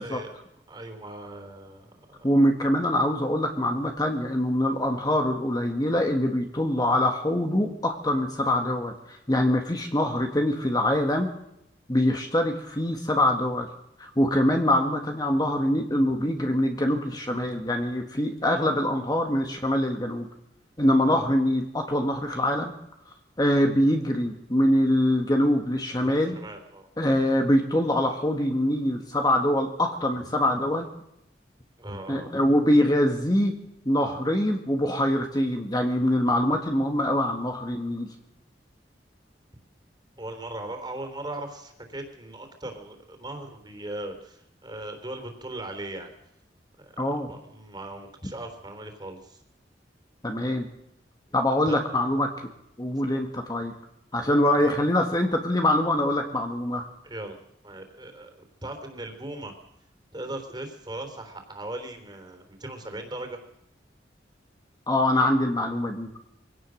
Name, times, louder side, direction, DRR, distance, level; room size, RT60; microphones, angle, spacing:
voice 1, 0.0-2.4 21.1-21.2 26.0-26.9 31.8-32.3 40.2-46.1 46.8-47.0 47.3-49.4 51.7-51.8 53.1-53.2 54.1-54.7 57.0-57.4 57.6-58.3 58.6-59.5 60.1-63.4, right 1 dB, 25° right, 6 dB, 3.5 m, -39 dB
voice 2, 2.2-11.3 11.9-13.7 14.0-20.3 20.8-22.7 23.4-26.4 27.0-30.9 32.1-33.5 33.8-38.1 47.0-47.3 50.2-50.7 51.3-52.5 52.8-53.7 54.1-56.9 64.9-66.3, left 1 dB, 25° left, 3 dB, 1.7 m, -24 dB
23.0 x 17.5 x 6.4 m, 0.80 s
head